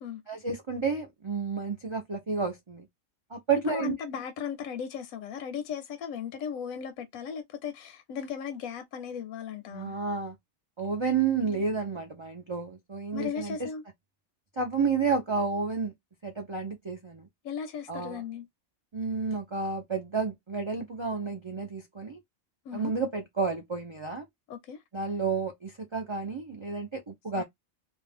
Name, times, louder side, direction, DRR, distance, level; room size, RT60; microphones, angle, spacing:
voice 1, 0.3-2.9 3.3-3.9 9.7-10.3 10.8-13.7 14.6-15.9 16.2-17.3 17.9-18.2 18.9-22.2 22.7-24.2 24.9-27.4, right 5 dB, 50° right, 0.3 m, -31 dB
voice 2, 3.7-10.0 11.4-11.6 13.1-13.8 17.4-18.5 22.7-22.9 24.5-24.8 27.3-27.4, left 7 dB, 80° left, 1.0 m, -36 dB
2.6 x 2.4 x 3.3 m
omnidirectional pair, 1.5 m